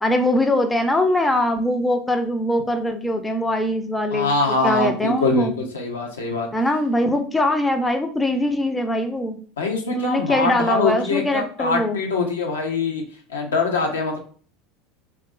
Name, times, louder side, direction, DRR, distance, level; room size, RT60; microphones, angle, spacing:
voice 1, 0.0-4.3 4.6-5.5 6.5-9.4 9.9-12.0, left 1 dB, 10° left, 6 dB, 0.3 m, -22 dB
voice 2, 4.1-6.5 9.6-13.0 13.3-14.2, left 3 dB, 80° left, 2 dB, 0.5 m, -23 dB
2.8 x 2.2 x 2.2 m, 0.42 s
figure-of-eight pair, 75°, 0 cm